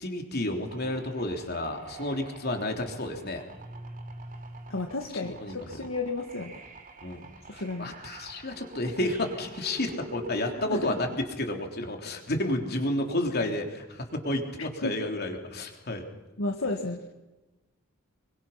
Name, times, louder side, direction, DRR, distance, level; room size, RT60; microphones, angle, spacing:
voice 1, 0.0-3.4 5.2-5.9 7.0-16.0, left 1 dB, 50° left, 4 dB, 3.5 m, -31 dB
sound 1, 0.6-11.2, right 2 dB, 40° right, 3.4 m, -45 dB
voice 2, 4.7-6.6 7.6-7.9 10.4-10.9 14.8-15.0 16.4-17.1, left 2 dB, 75° left, 3 dB, 1.9 m, -33 dB
26.5 x 24.0 x 5.9 m, 1.1 s
head